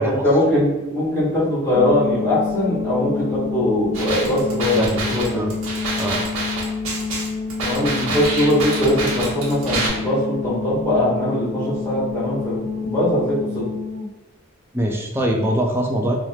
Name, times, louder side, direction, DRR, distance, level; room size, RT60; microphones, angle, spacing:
voice 1, 0.0-4.8 5.1-5.4 7.6-13.7, left 1 dB, 15° left, -10 dB, 1.5 m, -21 dB
sound 1, 1.7-14.1, left 5 dB, 45° left, 0.7 m, -28 dB
sound 2, 3.9-9.9, right 2 dB, 80° right, 1.1 m, -27 dB
voice 2, 4.7-5.6 6.0-6.2 14.7-16.1, right 1 dB, 10° right, 0 dB, 0.4 m, -23 dB
3.1 x 2.9 x 2.3 m, 1.0 s
head